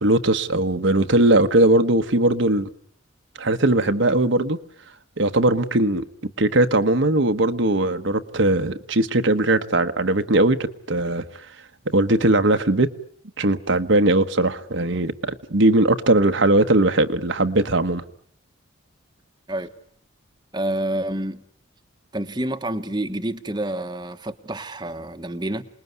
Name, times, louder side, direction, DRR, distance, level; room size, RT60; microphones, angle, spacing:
voice 1, 0.0-2.7 3.4-4.6 5.2-6.0 6.4-11.2 11.9-12.9 13.4-18.0, right 2 dB, 60° right, 1.2 m, -19 dB
voice 2, 20.5-21.4 22.1-25.6, right 1 dB, 20° right, 1.2 m, -28 dB
28.0 x 20.5 x 9.5 m
head